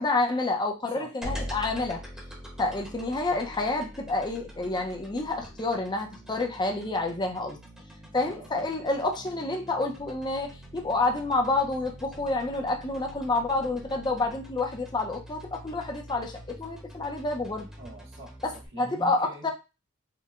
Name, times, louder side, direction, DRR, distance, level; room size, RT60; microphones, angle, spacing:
voice 1, 0.0-2.0 2.6-7.6 8.1-17.7 18.4-19.5, left 2 dB, 20° left, 3 dB, 0.5 m, -29 dB
sound 1, 1.2-18.7, equal, 5° right, 0.9 m, -44 dB
voice 2, 8.2-8.7 17.8-18.4 18.7-19.5, right 1 dB, 60° right, -2 dB, 1.0 m, -44 dB
4.4 x 2.1 x 2.4 m, 0.28 s
head